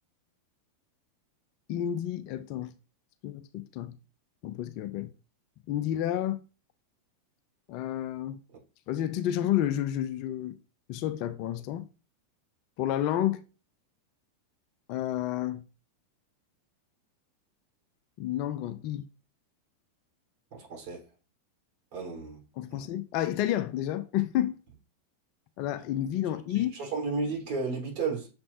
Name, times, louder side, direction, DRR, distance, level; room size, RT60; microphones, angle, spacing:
voice 1, 1.7-2.7 3.2-4.0 4.4-5.1 5.7-6.4 7.7-8.4 8.9-10.5 10.9-11.9 12.8-13.4 14.9-15.6 18.2-19.1 22.6-24.6 25.6-26.7, left 12 dB, 45° left, 0.5 m, -30 dB
voice 2, 20.5-21.0 21.9-22.4 22.7-22.9 26.5-28.3, right 4 dB, 45° right, 4.0 m, -33 dB
6.8 x 5.3 x 2.7 m
figure-of-eight pair, 90°, 0 cm